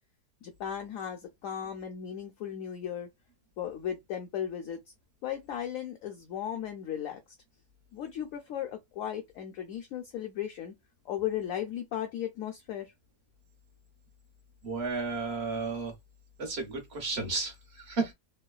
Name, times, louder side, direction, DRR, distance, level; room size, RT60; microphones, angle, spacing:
voice 1, 0.4-3.1 3.6-4.8 5.2-7.2 7.9-10.7 11.1-12.9, left 10 dB, 70° left, 0.8 m, -36 dB
voice 2, 14.6-15.9 16.4-18.1, right 4 dB, 45° right, 1.2 m, -33 dB
3.2 x 2.1 x 2.3 m
omnidirectional pair, 1.7 m